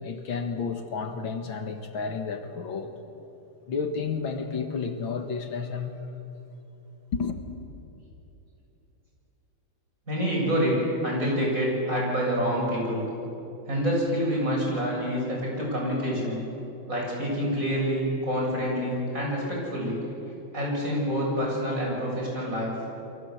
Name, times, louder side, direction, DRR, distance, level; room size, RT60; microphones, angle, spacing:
voice 1, 0.0-2.9 3.7-5.9 7.1-7.4, left 5 dB, 80° left, 6 dB, 2.5 m, -31 dB
voice 2, 10.1-10.8 11.0-13.0 13.7-16.4 16.9-20.0 20.5-22.7, equal, 40° right, -3 dB, 8.5 m, -27 dB
29.5 x 23.5 x 8.1 m, 2.9 s
omnidirectional pair, 2.2 m